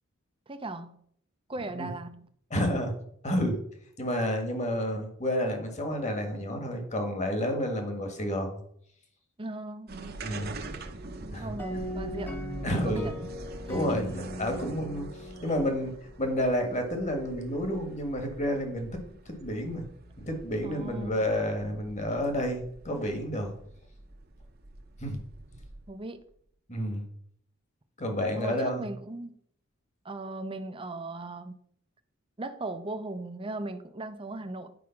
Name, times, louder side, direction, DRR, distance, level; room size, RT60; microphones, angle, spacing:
voice 1, 0.5-1.0 1.5-2.3 9.4-10.0 11.4-12.4 12.7-13.3 13.7-14.0 20.6-21.2 25.9-26.2 28.3-29.3 30.0-31.5 32.4-34.7, right 2 dB, 25° right, 0.6 m, -38 dB
voice 2, 2.5-2.9 3.2-3.6 4.0-8.6 10.2-10.5 11.2-11.5 12.6-13.1 13.7-15.9 16.2-18.9 19.3-19.8 20.3-23.5 25.0-25.2 26.7-27.0 28.0-28.8, equal, 35° left, 1.7 m, -30 dB
sound 1, 9.9-26.1, right 2 dB, 45° right, 0.9 m, -45 dB
sound 2, 11.6-16.2, equal, 10° left, 0.9 m, -38 dB
9.5 x 4.9 x 5.8 m
head